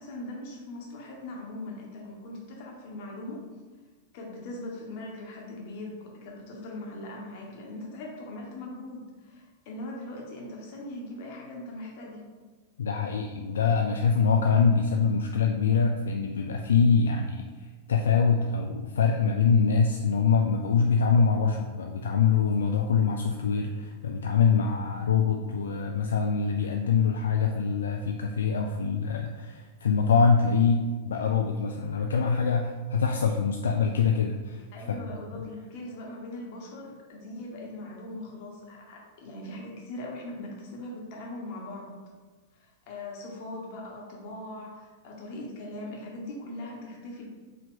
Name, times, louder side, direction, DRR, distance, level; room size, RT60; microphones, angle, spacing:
voice 1, 0.0-3.4 4.1-12.2 34.7-41.9 42.6-47.2, left 1 dB, 55° left, -1 dB, 1.3 m, -40 dB
voice 2, 12.8-35.0 35.3-35.4, left 5 dB, 80° left, 3 dB, 0.3 m, -24 dB
4.9 x 2.8 x 3.8 m, 1.4 s
hypercardioid pair, 110°, 0 cm